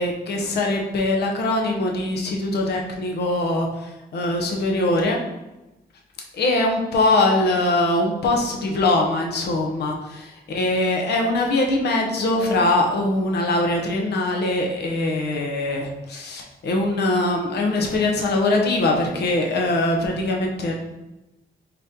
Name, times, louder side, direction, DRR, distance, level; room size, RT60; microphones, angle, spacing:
voice 1, 0.0-5.2 6.3-20.7, left 2 dB, 85° left, 1 dB, 0.7 m, -22 dB
4.0 x 3.6 x 2.7 m, 1.0 s
wide cardioid pair, 115°, 17 cm